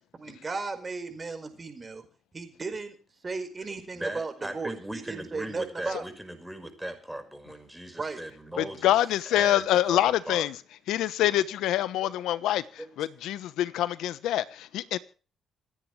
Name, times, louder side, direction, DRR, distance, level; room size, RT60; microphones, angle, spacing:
voice 1, 0.2-2.0 2.3-3.0 3.2-6.0 8.0-8.2, right 4 dB, 30° right, 4.9 m, -35 dB
voice 2, 3.9-8.9 9.3-10.0 10.3-10.5 12.8-12.9, right 1 dB, 5° right, 5.4 m, -38 dB
voice 3, 8.6-10.6 10.9-15.0, left 13 dB, 85° left, 1.1 m, -26 dB
27.5 x 10.0 x 3.3 m
cardioid pair, 90°, 0 cm